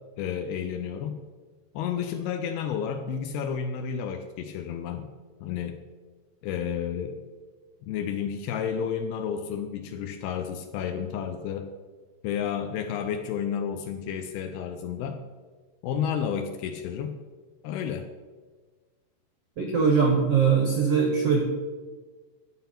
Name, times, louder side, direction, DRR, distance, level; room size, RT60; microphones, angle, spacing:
voice 1, 0.2-1.2 1.7-5.1 5.4-5.8 6.4-7.2 7.8-11.7 12.2-15.2 15.8-17.2 17.6-18.1, left 8 dB, 80° left, 6 dB, 2.4 m, -31 dB
voice 2, 19.6-21.4, right 5 dB, 85° right, 2 dB, 1.3 m, -21 dB
11.5 x 7.6 x 5.7 m, 1.4 s
omnidirectional pair, 4.9 m